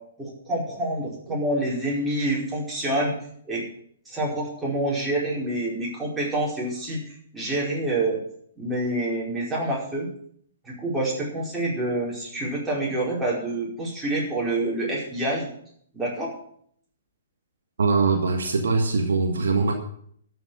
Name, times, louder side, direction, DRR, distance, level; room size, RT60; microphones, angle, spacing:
voice 1, 0.2-3.1 3.5-3.6 4.0-7.0 7.3-8.2 8.6-10.1 10.6-15.5 15.9-16.3, right 1 dB, 10° right, -5 dB, 5.0 m, -27 dB
voice 2, 17.8-19.7, right 4 dB, 60° right, 3 dB, 1.7 m, -22 dB
12.5 x 6.2 x 8.9 m, 0.65 s
figure-of-eight pair, 120°, 0 cm